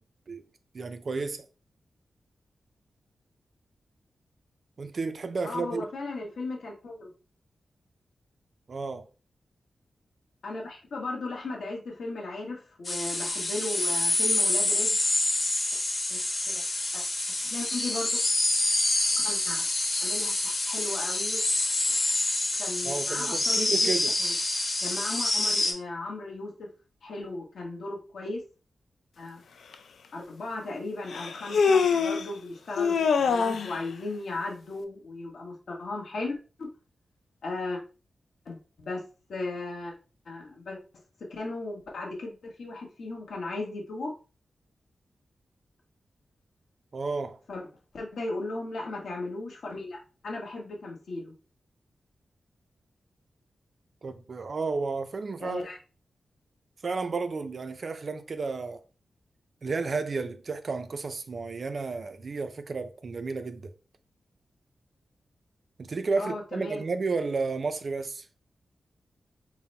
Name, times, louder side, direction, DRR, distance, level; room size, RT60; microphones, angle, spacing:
voice 1, 0.7-1.4 4.8-5.9 8.7-9.0 22.8-24.1 46.9-47.4 54.0-55.7 56.8-58.8 59.6-63.7 65.8-68.2, right 4 dB, 40° right, 0.3 m, -32 dB
voice 2, 5.4-7.1 10.4-15.0 16.1-16.2 16.4-16.6 16.9-17.0 17.4-18.2 19.2-19.7 20.0-21.4 22.6-24.3 24.8-26.7 27.0-28.4 29.2-29.4 30.1-36.7 37.4-37.8 38.4-39.0 39.3-39.9 40.2-40.8 41.3-44.1 47.5-47.6 47.9-51.3 55.4-55.8 66.2-66.8, left 2 dB, 70° left, 1.1 m, -36 dB
sound 1, 12.8-25.7, left 2 dB, 30° left, 0.9 m, -27 dB
Human voice, 29.7-29.8 31.1-32.3 32.8-33.8, left 5 dB, 90° left, 0.4 m, -24 dB
3.9 x 2.0 x 4.2 m
wide cardioid pair, 180°, 0 cm